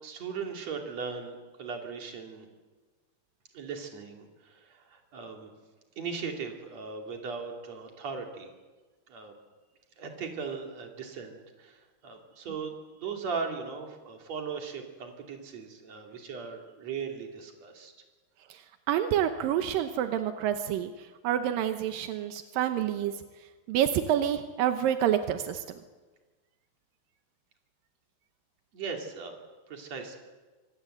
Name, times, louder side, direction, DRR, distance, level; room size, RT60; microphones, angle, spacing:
voice 1, 0.0-2.5 3.5-5.5 6.0-8.5 9.1-9.4 10.0-17.9 28.7-29.4 29.7-30.2, right 5 dB, 40° right, 2 dB, 3.5 m, -38 dB
voice 2, 18.5-23.1 23.7-25.6, right 10 dB, 80° right, 8 dB, 2.1 m, -28 dB
25.5 x 18.0 x 8.0 m, 1.3 s
omnidirectional pair, 5.2 m